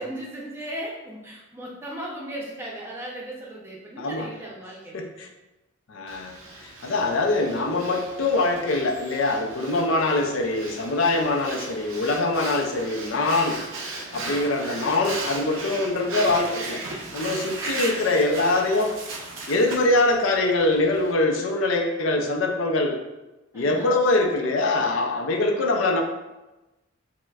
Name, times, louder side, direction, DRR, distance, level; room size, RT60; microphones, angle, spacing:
voice 1, 0.0-5.0 14.1-14.4 23.5-23.9 25.2-25.9, right 1 dB, 10° right, -3 dB, 0.6 m, -37 dB
voice 2, 4.9-5.3 5.9-6.4 6.6-13.6 14.1-16.9 17.1-19.0 19.5-23.0 23.5-26.0, left 2 dB, 85° left, 4 dB, 0.4 m, -23 dB
Breathing, 6.1-21.1, right 2 dB, 90° right, 0.6 m, -37 dB
5.7 x 2.1 x 2.3 m, 1.0 s
head